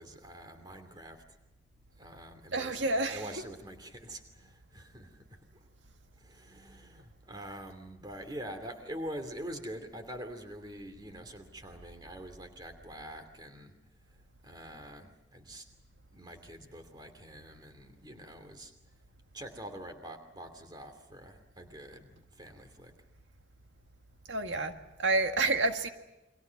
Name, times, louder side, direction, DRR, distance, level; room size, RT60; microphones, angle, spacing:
voice 1, 0.0-1.4 2.0-5.7 6.2-13.8 14.1-15.7 16.1-18.7 19.3-23.0, right 1 dB, 20° right, 7 dB, 2.8 m, -45 dB
voice 2, 2.5-3.2 24.3-24.7 25.0-25.9, right 2 dB, 85° right, 6 dB, 1.8 m, -28 dB
29.5 x 23.5 x 5.9 m, 0.97 s
head